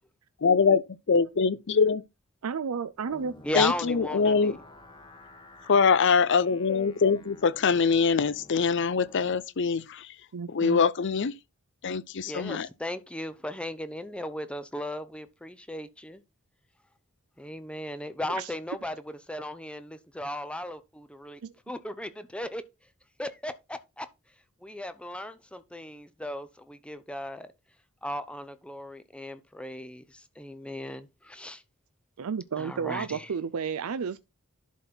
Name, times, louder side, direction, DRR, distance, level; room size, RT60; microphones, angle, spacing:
voice 1, 0.4-2.0 3.5-4.6 5.7-10.1 10.5-11.3 11.8-12.7, left 5 dB, 55° left, 0.6 m, -23 dB
voice 2, 2.4-3.4 10.3-10.8 18.3-18.5 21.4-21.5 32.2-34.2, right 6 dB, 80° right, 0.5 m, -32 dB
sound 1, 3.1-9.3, left 1 dB, 20° left, 1.3 m, -51 dB
voice 3, 3.4-4.6 12.2-16.2 17.4-19.0 19.3-21.4 21.7-22.6 23.2-24.1 24.6-27.5 28.0-31.6 32.6-33.3, left 1 dB, 5° left, 0.6 m, -36 dB
11.0 x 4.0 x 4.3 m
head